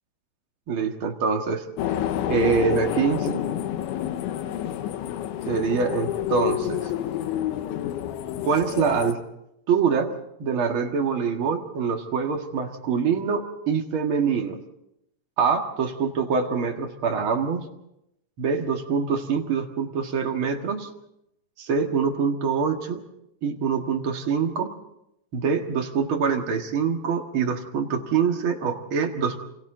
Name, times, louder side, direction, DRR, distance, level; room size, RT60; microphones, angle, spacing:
voice 1, 0.7-1.6 2.3-3.4 5.5-6.9 8.4-9.2 9.7-10.1 10.4-14.6 15.4-17.6 18.4-20.9 21.6-23.0 23.4-24.7 25.3-29.4, right 6 dB, 60° right, 2 dB, 1.3 m, -24 dB
sound 1, 1.8-9.1, left 11 dB, 90° left, 3.5 m, -29 dB
29.0 x 26.0 x 3.9 m, 0.81 s
omnidirectional pair, 5.2 m